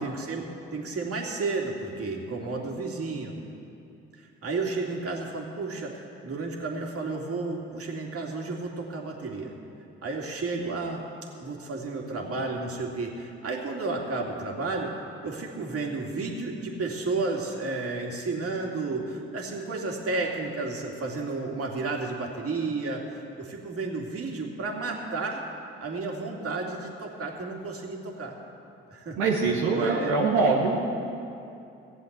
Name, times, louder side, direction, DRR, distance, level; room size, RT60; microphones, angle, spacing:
voice 1, 0.0-3.4 4.1-9.5 10.0-11.0 11.3-14.9 15.2-25.4 25.8-28.3 28.9-29.2 29.7-30.1, right 3 dB, 50° right, 0 dB, 2.5 m, -32 dB
voice 2, 29.2-30.8, right 4 dB, 85° right, -3 dB, 1.3 m, -23 dB
16.0 x 7.6 x 8.2 m, 2.6 s
hypercardioid pair, 50°, 29 cm